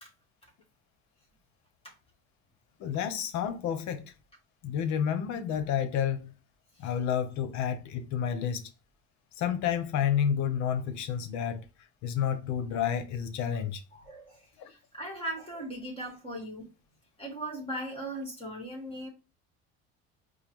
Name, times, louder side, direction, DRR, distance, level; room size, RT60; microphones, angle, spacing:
voice 1, 2.8-4.1 4.6-6.3 6.8-8.7 9.4-11.6 12.0-13.8 14.6-14.7, left 8 dB, 70° left, 0.8 m, -30 dB
voice 2, 13.9-16.7 17.2-19.1, right 1 dB, 20° left, 1.6 m, -39 dB
5.0 x 2.1 x 3.0 m
supercardioid pair, 85°, 30 cm